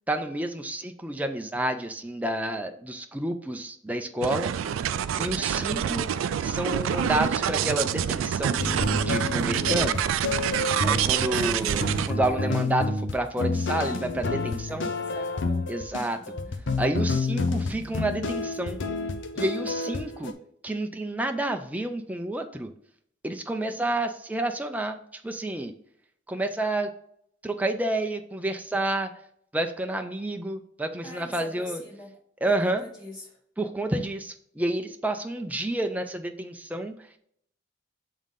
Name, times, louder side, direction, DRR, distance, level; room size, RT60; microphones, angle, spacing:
voice 1, 0.1-4.5 5.2-6.1 6.4-10.0 10.8-14.9 15.7-16.2 16.8-18.8 19.4-20.3 20.6-22.7 23.2-25.7 26.3-26.9 27.4-29.1 29.5-31.8 32.4-32.8 33.6-36.9, right 1 dB, 10° right, 5 dB, 0.4 m, -29 dB
sound 1, 4.2-12.1, right 9 dB, 85° right, 0.3 m, -27 dB
sound 2, 8.6-20.3, left 3 dB, 65° left, 0.7 m, -29 dB
voice 2, 11.3-12.7 14.4-15.7 16.1-16.6 31.0-32.1 32.4-33.4, left 1 dB, 25° left, -5 dB, 2.6 m, -43 dB
7.2 x 3.7 x 3.6 m, 0.67 s
head